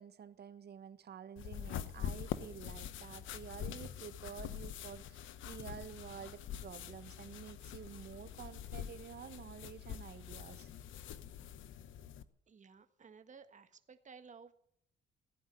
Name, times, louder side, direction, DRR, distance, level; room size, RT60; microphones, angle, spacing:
voice 1, 0.0-10.7, right 8 dB, 55° right, 12 dB, 1.5 m, -50 dB
sound 1, 1.4-12.2, left 9 dB, 80° left, 1.0 m, -45 dB
voice 2, 12.5-14.5, right 5 dB, 40° right, 9 dB, 1.5 m, -56 dB
16.0 x 9.5 x 9.3 m, 0.69 s
cardioid pair, 90°, 20 cm